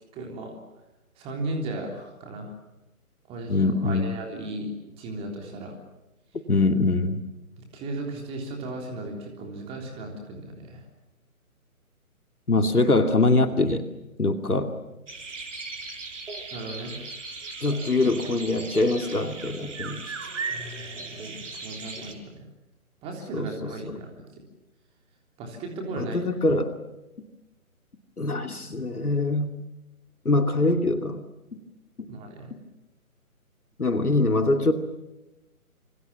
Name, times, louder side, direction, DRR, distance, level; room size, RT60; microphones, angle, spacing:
voice 1, 0.1-0.5 1.2-2.5 3.3-4.7 5.0-5.7 7.7-10.8 16.5-17.0 20.5-22.5 23.0-24.2 25.4-26.2 32.1-32.5, right 2 dB, 15° right, 2 dB, 3.5 m, -36 dB
voice 2, 3.5-4.1 6.5-7.2 12.5-13.8 14.2-14.8 17.6-20.2 23.3-23.7 26.0-26.8 28.2-29.6 30.2-31.2 32.0-32.1 33.8-34.7, left 2 dB, 85° left, 7 dB, 2.6 m, -23 dB
sound 1, 15.1-22.1, right 4 dB, 55° right, 4.8 m, -37 dB
26.5 x 26.5 x 7.3 m, 0.99 s
figure-of-eight pair, 145°, 43 cm